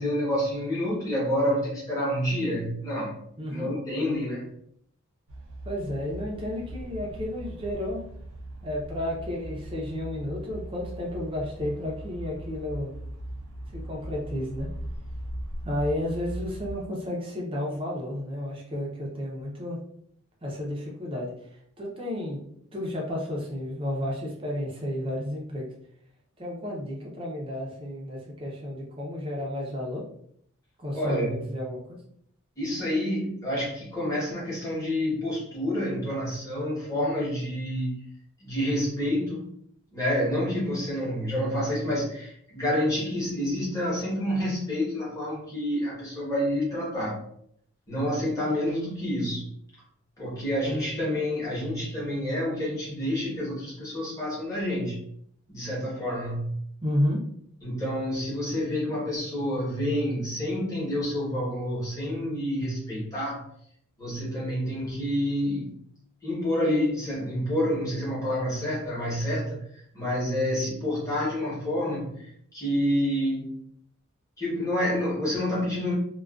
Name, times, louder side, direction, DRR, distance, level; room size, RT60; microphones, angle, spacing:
voice 1, 0.0-3.2 3.5-4.5 30.9-31.3 32.6-38.0 38.4-39.5 39.9-47.2 47.9-49.5 50.2-55.0 55.5-56.6 57.6-63.4 64.0-65.8 66.2-69.6 69.9-73.5 74.4-75.9, equal, 15° left, -7 dB, 0.9 m, -28 dB
voice 2, 3.4-3.7 5.6-8.0 8.6-12.9 13.7-14.7 15.6-19.8 20.4-21.3 21.8-22.4 22.7-25.7 26.4-30.0 30.8-32.0 56.8-57.2, left 1 dB, 25° right, -2 dB, 0.5 m, -32 dB
sound 1, 5.3-16.8, right 1 dB, 75° right, 0.5 m, -39 dB
2.3 x 2.3 x 2.3 m, 0.68 s
head